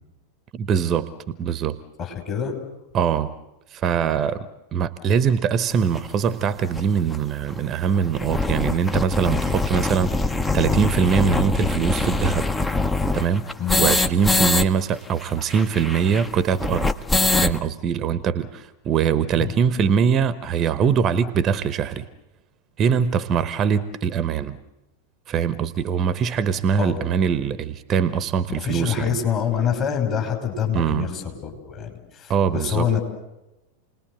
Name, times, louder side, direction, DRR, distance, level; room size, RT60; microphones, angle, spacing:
voice 1, 0.5-1.8 2.9-3.3 3.7-4.5 4.7-12.5 13.1-13.5 13.8-16.9 17.4-22.1 22.8-24.6 25.3-29.2 30.7-31.1 32.3-32.9, right 7 dB, 30° right, 16 dB, 1.0 m, -22 dB
voice 2, 2.0-2.5 13.6-13.8 19.4-19.5 26.8-27.0 28.6-33.0, left 8 dB, 35° left, 3 dB, 5.4 m, -26 dB
sound 1, 6.0-6.1 6.8-6.9 7.1-7.2 7.5-7.6 8.0-14.7 14.9-15.0 15.2-17.6, left 3 dB, 10° left, 0.9 m, -23 dB
29.0 x 20.0 x 8.1 m, 0.97 s
figure-of-eight pair, 90°, 0 cm